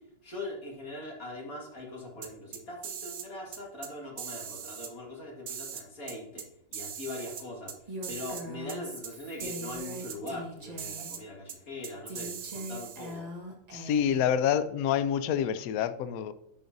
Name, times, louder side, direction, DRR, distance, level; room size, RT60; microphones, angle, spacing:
voice 1, 0.2-7.8 8.1-13.3, left 2 dB, 50° left, -2 dB, 2.4 m, -41 dB
sound 1, 2.2-3.3 3.5-3.9 4.2-4.9 5.5-6.5 6.7-7.8 8.0-8.4 8.7-8.8 9.0-9.1 9.4-10.2 10.8-11.2 11.5-11.6 11.8-13.2, right 8 dB, 60° right, 0.6 m, -40 dB
Female speech woman speaking, 7.9-11.2 12.1-14.3, equal, 25° right, 1.0 m, -42 dB
voice 2, 13.7-16.3, left 9 dB, 75° left, 13 dB, 0.8 m, -27 dB
9.3 x 5.2 x 2.7 m, 0.82 s
omnidirectional pair, 2.0 m